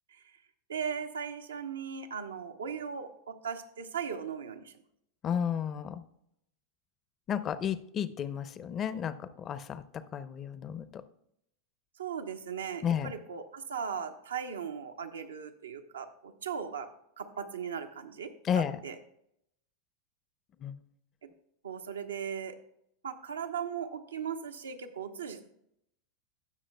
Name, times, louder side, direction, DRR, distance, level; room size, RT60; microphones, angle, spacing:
voice 1, 0.7-4.7 12.0-18.3 18.5-19.0 21.2-21.3 21.6-22.6 23.0-25.5, right 7 dB, 80° right, 6 dB, 0.9 m, -38 dB
voice 2, 5.2-6.0 7.3-11.0 12.8-13.1 18.4-18.8 20.6-20.8, left 8 dB, 35° left, 14 dB, 0.7 m, -33 dB
18.0 x 6.3 x 2.2 m, 0.76 s
figure-of-eight pair, 90°, 0 cm